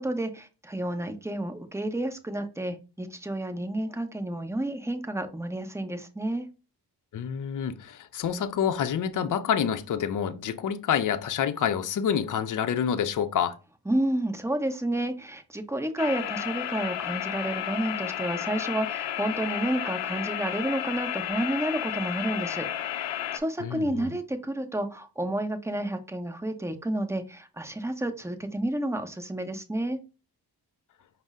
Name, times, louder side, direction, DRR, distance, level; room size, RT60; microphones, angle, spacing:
voice 1, 0.0-6.5 13.9-30.0, right 1 dB, 5° right, 0.8 m, -30 dB
voice 2, 7.1-13.6 23.6-24.1, left 8 dB, 50° left, 0.6 m, -28 dB
sound 1, 16.0-23.4, left 11 dB, 90° left, 0.6 m, -32 dB
5.2 x 2.1 x 3.6 m
cardioid pair, 70°, 41 cm